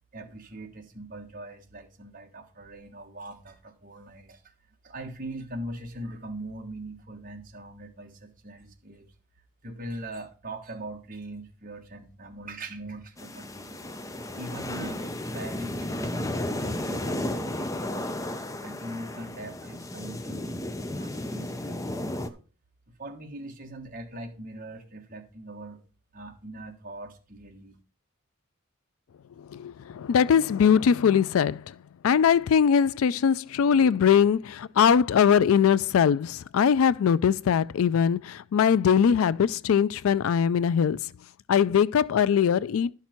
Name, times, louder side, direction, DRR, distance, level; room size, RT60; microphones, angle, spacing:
voice 1, 0.1-4.5 4.8-9.1 9.6-13.7 14.4-18.1 18.6-22.4 23.0-25.8 26.1-27.8, right 1 dB, 40° right, 1.5 m, -41 dB
sound 1, 13.2-22.3, left 1 dB, 15° left, 0.6 m, -33 dB
voice 2, 29.5-31.6 32.0-41.0 41.5-42.9, left 7 dB, 85° left, 0.4 m, -21 dB
11.5 x 5.8 x 4.4 m
head